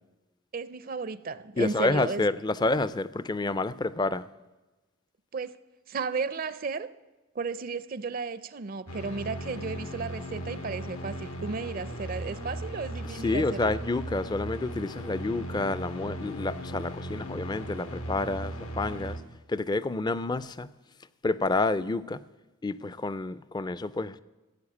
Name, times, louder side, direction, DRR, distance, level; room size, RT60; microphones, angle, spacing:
voice 1, 0.5-2.2 5.3-5.6 5.9-6.9 7.4-13.7, right 4 dB, 40° right, 0.4 m, -34 dB
voice 2, 1.6-4.3 13.2-19.2 19.5-20.7 21.2-22.2 22.6-24.2, left 2 dB, 20° left, 0.4 m, -29 dB
sound 1, 8.9-19.2, right 1 dB, 85° left, 1.8 m, -37 dB
15.5 x 8.4 x 8.5 m
head